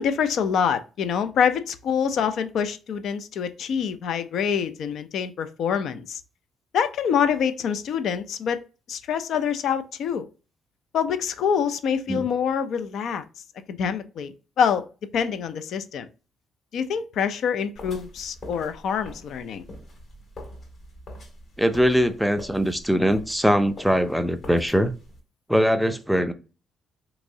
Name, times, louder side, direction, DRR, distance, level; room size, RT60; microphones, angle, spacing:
voice 1, 0.0-6.2 6.7-8.6 8.9-10.3 10.9-13.2 13.7-14.9 15.1-16.1 16.7-19.6, left 7 dB, 70° left, 0.4 m, -25 dB
sound 1, 17.8-25.2, left 1 dB, 50° left, 1.8 m, -44 dB
voice 2, 21.6-24.9 25.5-26.3, equal, ahead, 0.4 m, -21 dB
3.5 x 2.9 x 2.7 m
cardioid pair, 90°, 0 cm